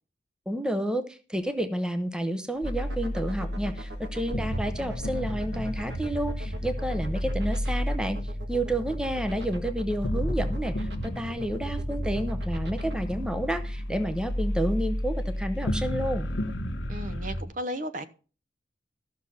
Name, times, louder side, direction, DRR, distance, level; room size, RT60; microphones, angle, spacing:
voice 1, 0.5-16.3, right 1 dB, 5° right, 8 dB, 0.8 m, -30 dB
sound 1, 2.5-12.9, right 1 dB, 60° right, 1.7 m, -43 dB
Cold Night Alone copy, 2.6-17.4, equal, 75° left, 1.1 m, -31 dB
voice 2, 16.9-18.1, equal, 45° right, 11 dB, 0.9 m, -34 dB
13.5 x 6.4 x 5.6 m, 0.36 s
head